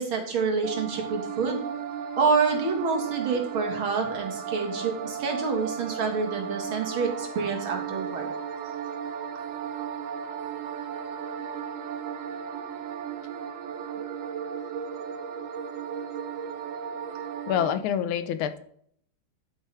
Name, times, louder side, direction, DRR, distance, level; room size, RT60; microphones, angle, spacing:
voice 1, 0.0-1.6 2.2-8.3, right 5 dB, 75° right, 2 dB, 2.5 m, -27 dB
sound 1, 0.6-17.8, right 7 dB, 90° right, 0.7 m, -35 dB
voice 2, 17.5-18.6, left 9 dB, 90° left, 11 dB, 1.6 m, -26 dB
10.0 x 8.9 x 3.4 m, 0.65 s
omnidirectional pair, 2.3 m